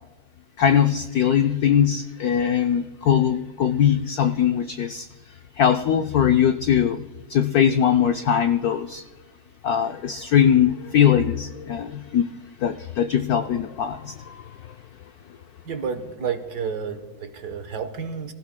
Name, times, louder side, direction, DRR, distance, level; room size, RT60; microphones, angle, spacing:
voice 1, 0.6-5.1 5.6-9.0 9.6-12.3 12.6-14.7, left 9 dB, 90° left, 7 dB, 0.8 m, -21 dB
voice 2, 15.6-18.3, right 6 dB, 55° right, 8 dB, 1.4 m, -30 dB
28.5 x 15.5 x 2.2 m, 1.2 s
omnidirectional pair, 2.2 m